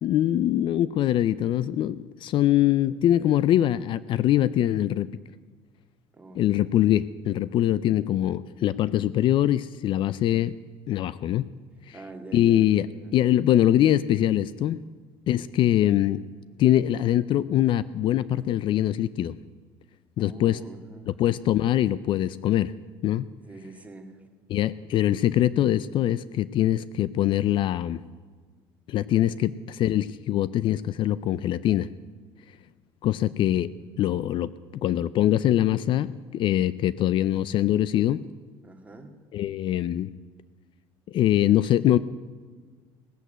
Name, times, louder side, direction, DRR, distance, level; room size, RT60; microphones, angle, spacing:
voice 1, 0.0-5.1 6.3-10.5 10.9-11.5 11.9-12.0 12.3-12.9 13.1-14.8 15.3-16.2 16.6-19.3 20.2-20.6 21.1-22.7 23.0-23.3 24.5-28.0 28.9-31.9 33.0-33.7 34.0-34.5 34.8-38.2 39.3-40.1 41.1-42.0, left 12 dB, 55° left, 17 dB, 0.4 m, -23 dB
voice 2, 6.1-6.8 11.9-12.7 13.0-13.2 20.2-21.1 23.4-24.2 29.1-29.5 33.2-33.4 38.6-39.1, right 2 dB, 15° right, 4 dB, 2.0 m, -45 dB
18.0 x 8.2 x 9.0 m, 1.5 s
cardioid pair, 115°, 10 cm